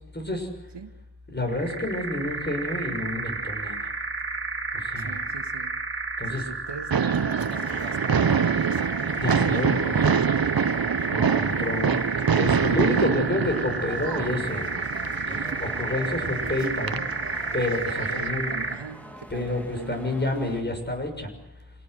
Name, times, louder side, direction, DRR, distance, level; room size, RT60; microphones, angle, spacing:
voice 1, 0.1-0.5 1.3-3.8 4.8-5.2 6.2-6.5 9.2-10.1 11.1-12.0 12.4-14.7 15.3-17.0 17.5-18.5 19.3-21.3, left 2 dB, 25° left, 4 dB, 6.4 m, -29 dB
sound 1, 1.5-18.9, right 3 dB, 30° right, 2.1 m, -31 dB
voice 2, 4.9-5.8 6.3-11.5 18.1-20.1, right 4 dB, 90° right, 7 dB, 1.9 m, -40 dB
sound 2, 6.9-18.3, right 7 dB, 60° right, 0.9 m, -26 dB
sound 3, 7.4-20.6, equal, 5° left, 2.8 m, -44 dB
27.5 x 18.5 x 7.9 m, 0.90 s
wide cardioid pair, 90°, 41 cm